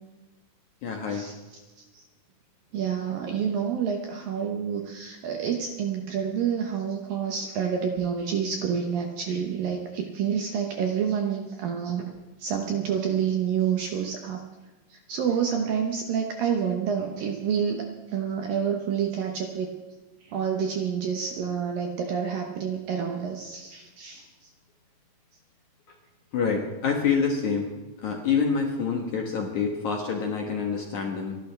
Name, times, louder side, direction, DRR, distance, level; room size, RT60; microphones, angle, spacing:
voice 1, 0.8-1.3 26.3-27.7 28.0-31.4, left 5 dB, 70° left, 1 dB, 1.8 m, -27 dB
voice 2, 2.7-12.0 12.4-14.4 14.9-19.7 20.2-24.5, right 7 dB, 70° right, 2 dB, 2.2 m, -28 dB
29.5 x 12.0 x 3.4 m, 1.2 s
omnidirectional pair, 5.4 m